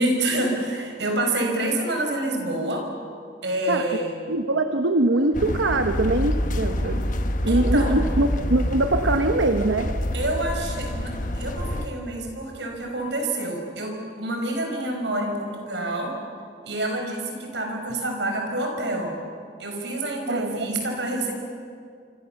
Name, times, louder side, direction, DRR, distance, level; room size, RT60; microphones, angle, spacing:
voice 1, 0.0-2.9 3.4-4.1 7.5-7.9 10.1-16.1 16.6-19.1 19.6-21.3, right 1 dB, 70° right, 3 dB, 5.9 m, -27 dB
voice 2, 4.3-7.1 7.4-9.9 20.3-20.7, right 2 dB, 90° right, 6 dB, 1.2 m, -23 dB
sound 1, 5.3-11.9, left 1 dB, 45° left, 1.5 m, -26 dB
28.0 x 25.5 x 7.2 m, 2.3 s
head